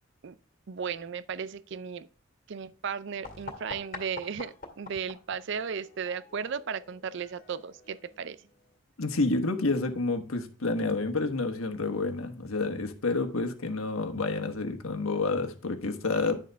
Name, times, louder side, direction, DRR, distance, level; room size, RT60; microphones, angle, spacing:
voice 1, 0.7-2.1 2.5-8.5, right 6 dB, 60° right, 0.4 m, -35 dB
sound 1, 3.2-8.8, left 3 dB, 40° left, 1.9 m, -47 dB
voice 2, 9.0-16.4, left 3 dB, 85° left, 1.4 m, -29 dB
10.5 x 6.8 x 3.5 m
head